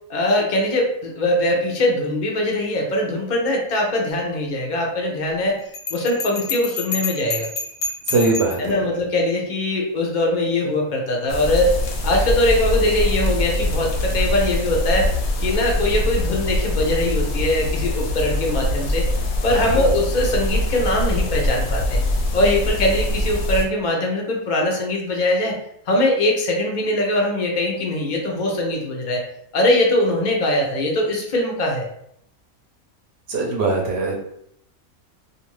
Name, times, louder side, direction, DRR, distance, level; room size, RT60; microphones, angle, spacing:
voice 1, 0.1-5.5 5.9-7.5 8.6-11.8 12.0-15.1 15.4-19.1 19.4-22.0 22.3-25.6 25.9-29.2 29.5-31.9, left 1 dB, 55° left, 0 dB, 0.5 m, -21 dB
Bell, 5.7-8.7, left 4 dB, 70° left, 0.9 m, -28 dB
voice 2, 8.1-8.8 19.5-19.9 33.3-34.2, right 3 dB, 60° right, -1 dB, 0.7 m, -22 dB
sound 1, 11.3-23.6, left 1 dB, 90° left, 1.1 m, -23 dB
2.5 x 2.4 x 3.1 m, 0.72 s
omnidirectional pair, 1.5 m